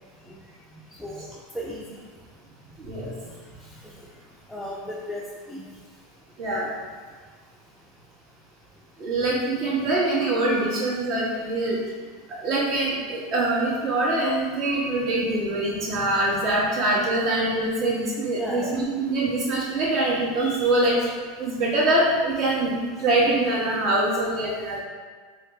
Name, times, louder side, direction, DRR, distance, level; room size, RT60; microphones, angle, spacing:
voice 1, 2.8-3.1 6.4-6.7 9.0-11.8 12.3-21.1 21.4-24.8, right 2 dB, 50° right, -5 dB, 1.3 m, -24 dB
voice 2, 4.5-5.6 18.3-18.8, equal, ahead, -5 dB, 0.5 m, -34 dB
3.7 x 3.2 x 3.1 m, 1.5 s
hypercardioid pair, 105°, 0 cm